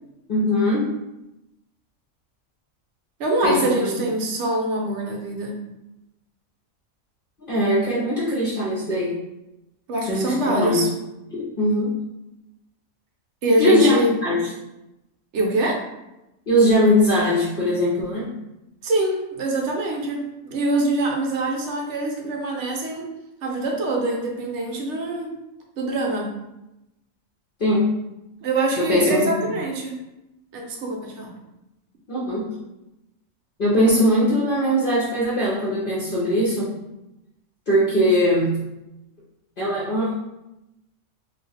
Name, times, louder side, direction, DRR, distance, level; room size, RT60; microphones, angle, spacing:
voice 1, 0.3-0.9 3.4-4.0 7.4-9.2 10.1-10.9 11.3-12.0 13.6-14.4 16.5-18.3 27.6-27.9 28.8-29.3 32.1-32.5 33.6-36.8 37.7-38.6 39.6-40.2, equal, 50° left, -8 dB, 0.8 m, -20 dB
voice 2, 3.2-5.6 9.9-10.9 13.4-14.1 15.3-15.8 18.8-23.1 23.4-25.3 25.8-26.3 28.4-30.0 30.5-31.3, right 2 dB, 60° right, 0 dB, 0.9 m, -24 dB
2.5 x 2.4 x 4.1 m, 0.93 s
omnidirectional pair, 1.4 m